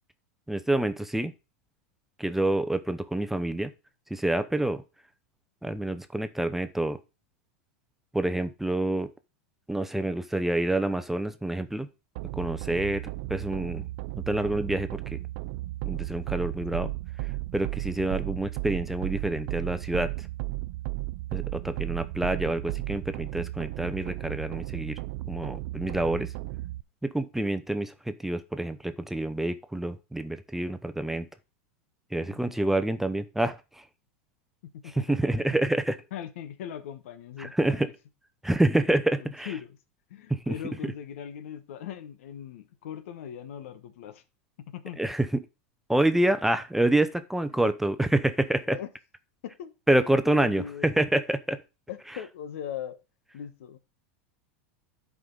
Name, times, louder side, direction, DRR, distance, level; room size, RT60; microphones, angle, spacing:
voice 1, 0.5-1.3 2.2-3.7 4.1-4.8 5.6-7.0 8.1-9.1 9.7-11.9 12.3-13.8 14.3-15.2 15.9-16.9 17.5-20.3 21.3-25.0 25.3-26.3 27.0-31.3 32.1-33.8 35.1-36.0 37.4-37.9 38.4-39.5 40.3-40.5 45.0-45.3 45.9-48.8 49.9-51.6, right 1 dB, 5° right, 0.7 m, -27 dB
sound 1, 12.2-26.8, right 20 dB, 60° right, 0.4 m, -34 dB
voice 2, 32.3-32.7 34.7-35.7 36.1-37.9 38.7-39.8 40.1-44.2 44.6-45.0 47.5-47.7 48.6-48.9 49.4-51.0 51.9-53.0 53.3-53.8, left 9 dB, 75° left, 1.2 m, -40 dB
11.0 x 5.0 x 4.0 m
hypercardioid pair, 115°, 7 cm